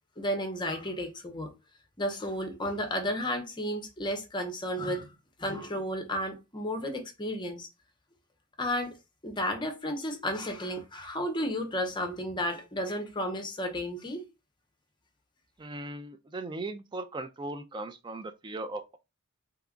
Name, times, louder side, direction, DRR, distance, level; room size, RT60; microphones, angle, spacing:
voice 1, 0.2-1.5 2.0-5.1 5.4-7.7 8.6-8.9 9.2-14.2, equal, 20° left, 0.7 m, -32 dB
voice 2, 15.6-19.0, right 2 dB, 20° right, 0.3 m, -38 dB
2.9 x 2.3 x 3.6 m
head